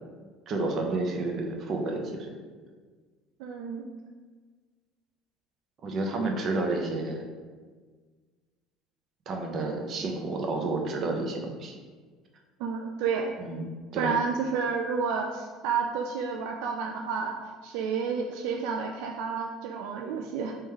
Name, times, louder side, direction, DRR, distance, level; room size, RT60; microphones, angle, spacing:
voice 1, 0.5-2.3 5.8-7.2 9.3-11.7 13.4-13.7 13.9-14.1, right 2 dB, 40° right, 2 dB, 0.7 m, -30 dB
voice 2, 3.4-3.9 12.6-13.3 14.0-17.4 17.6-20.5, right 5 dB, 75° right, 2 dB, 0.3 m, -30 dB
3.4 x 3.1 x 3.2 m, 1.5 s
supercardioid pair, 115°, 0 cm